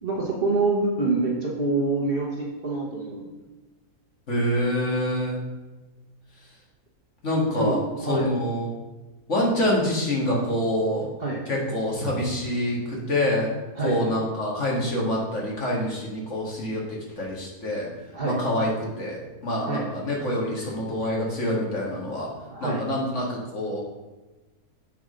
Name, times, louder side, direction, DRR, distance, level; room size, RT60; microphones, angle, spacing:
voice 1, 0.0-3.3 7.6-7.8 8.0-8.3 11.2-11.4 13.8-14.0 18.1-18.4 19.6-19.8 22.5-22.8, right 3 dB, 40° right, -2 dB, 1.2 m, -26 dB
voice 2, 4.3-5.4 7.2-8.7 9.3-11.1 11.5-13.5 13.8-17.9 18.2-18.7 19.0-22.3 22.6-23.8, left 1 dB, 50° left, -3 dB, 2.0 m, -26 dB
7.1 x 4.9 x 5.0 m, 1.2 s
omnidirectional pair, 1.6 m